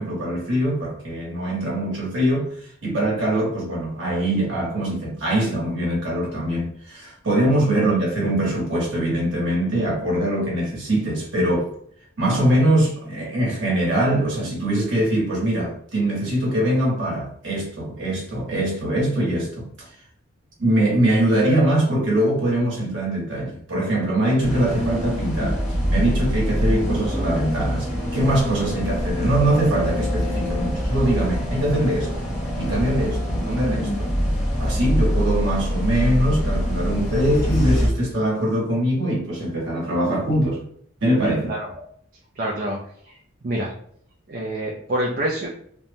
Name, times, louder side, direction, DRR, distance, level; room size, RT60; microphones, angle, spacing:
voice 1, 0.0-2.5 2.8-11.7 12.2-19.9 20.6-25.6 25.9-32.1 32.6-34.1 34.6-40.6 41.0-41.5, right 1 dB, 60° right, 1.1 m, -22 dB
sound 1, 24.4-37.9, equal, 35° left, 0.6 m, -24 dB
voice 2, 41.5-41.9 42.4-42.8 43.0-43.2 43.4-43.7 44.3-45.5, right 1 dB, 40° right, 0.4 m, -27 dB
3.0 x 2.1 x 2.6 m
head